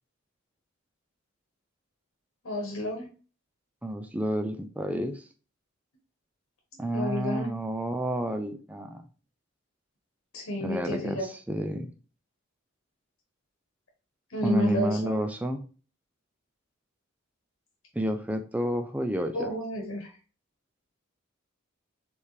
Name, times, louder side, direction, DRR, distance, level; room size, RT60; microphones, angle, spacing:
voice 1, 2.4-3.1 6.9-7.5 10.3-11.2 14.3-15.2 19.3-20.1, equal, 80° left, 1 dB, 1.3 m, -31 dB
voice 2, 3.8-5.2 6.8-9.0 10.6-11.9 14.4-15.7 17.9-19.5, equal, 5° right, 7 dB, 0.4 m, -30 dB
4.5 x 3.5 x 3.2 m, 0.37 s
head